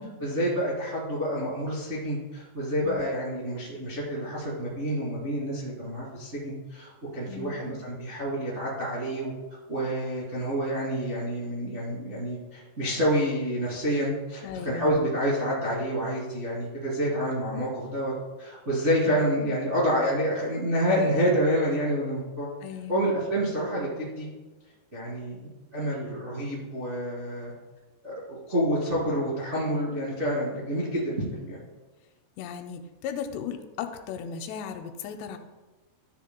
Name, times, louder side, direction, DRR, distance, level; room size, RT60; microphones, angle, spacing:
voice 1, 0.2-9.3 9.7-18.1 18.4-22.5 22.9-24.3 24.9-27.5 28.0-31.6, equal, 55° right, -6 dB, 0.7 m, -28 dB
voice 2, 14.4-15.0 22.6-23.0 32.4-35.4, left 7 dB, 85° left, 6 dB, 2.7 m, -36 dB
13.0 x 6.5 x 2.2 m, 1.2 s
omnidirectional pair, 4.9 m